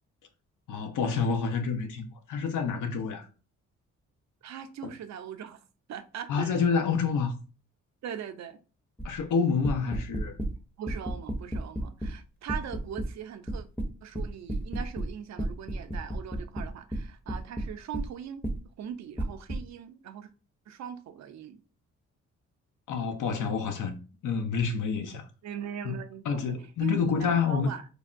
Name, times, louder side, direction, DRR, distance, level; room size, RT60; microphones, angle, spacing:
voice 1, 0.7-3.3 6.3-7.3 9.0-10.4 22.9-24.0 24.2-25.2 25.8-25.9 26.3-27.7, left 5 dB, 75° left, 0.6 m, -28 dB
voice 2, 4.4-5.6 5.9-6.6 8.0-8.6 10.8-13.7 14.0-18.4 18.8-20.3 20.7-21.6 25.4-27.9, right 9 dB, 60° right, 0.5 m, -40 dB
sound 1, 9.0-9.2 9.6-10.5 10.9-12.2 12.5-13.1 13.5-15.1 15.4-18.1 18.4-18.6 19.2-19.6, right 1 dB, 5° left, 0.6 m, -32 dB
3.3 x 2.1 x 2.5 m
cardioid pair, 70°, 31 cm